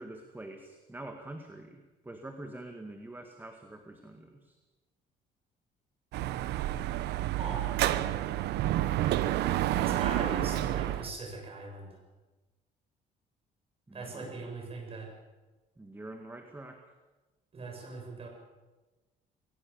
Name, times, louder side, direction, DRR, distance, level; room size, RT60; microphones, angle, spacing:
voice 1, 0.0-4.6 13.9-14.4 15.8-16.8, right 2 dB, 10° right, 5 dB, 1.9 m, -45 dB
Dog / Motorcycle, 6.1-11.1, right 14 dB, 80° right, 1.0 m, -29 dB
voice 2, 7.2-7.6 9.8-12.0 13.9-15.1 17.5-18.3, right 3 dB, 35° right, 2 dB, 7.3 m, -40 dB
21.0 x 18.5 x 7.2 m, 1.2 s
cardioid pair, 110°, 17 cm